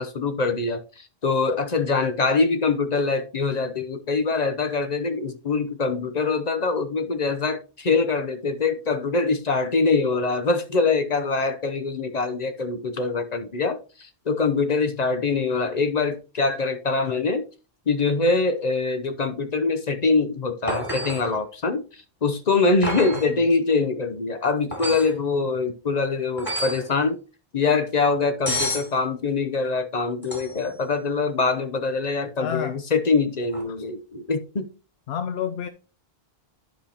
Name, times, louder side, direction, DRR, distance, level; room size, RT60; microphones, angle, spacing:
voice 1, 0.0-17.4 17.9-27.2 27.5-34.7, left 4 dB, 45° left, 0.7 m, -24 dB
sound 1, 20.7-21.3 22.8-23.3 24.7-25.1 26.4-26.9 28.5-28.9 30.2-30.7 33.5-33.6, equal, 10° left, 2.5 m, -29 dB
voice 2, 32.4-32.8 35.1-35.7, left 8 dB, 80° left, 0.9 m, -29 dB
10.5 x 5.1 x 2.8 m
omnidirectional pair, 1.0 m